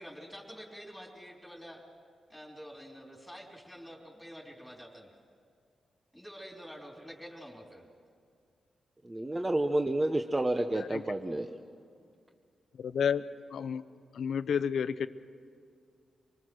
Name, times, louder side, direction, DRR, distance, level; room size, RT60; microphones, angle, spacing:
voice 1, 0.0-1.8 2.3-5.1 6.1-7.8, equal, ahead, 0 dB, 3.5 m, -47 dB
voice 2, 9.0-11.5, right 1 dB, 20° right, 5 dB, 0.8 m, -29 dB
voice 3, 12.8-13.2 13.5-13.8 14.1-15.1, left 7 dB, 80° left, 14 dB, 0.7 m, -30 dB
25.5 x 20.0 x 6.3 m, 2.2 s
cardioid pair, 85°, 0 cm